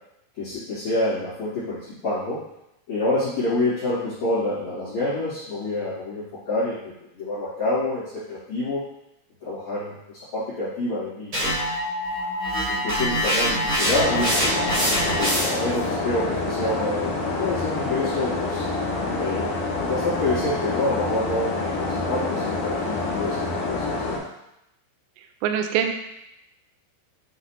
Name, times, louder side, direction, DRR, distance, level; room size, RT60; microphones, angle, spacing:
voice 1, 0.4-2.4 2.9-8.0 8.3-8.8 9.4-9.9 10.3-11.6 12.7-14.6 15.2-18.6 19.2-19.5 19.8-24.0, left 2 dB, 45° left, -12 dB, 3.0 m, -27 dB
sound 1, 11.3-15.7, equal, 40° right, 1.4 m, -24 dB
sound 2, 13.8-24.2, left 3 dB, 75° left, 1.9 m, -27 dB
voice 2, 25.4-25.9, right 8 dB, 80° right, 5 dB, 2.6 m, -23 dB
8.2 x 3.8 x 3.0 m, 0.85 s
omnidirectional pair, 5.5 m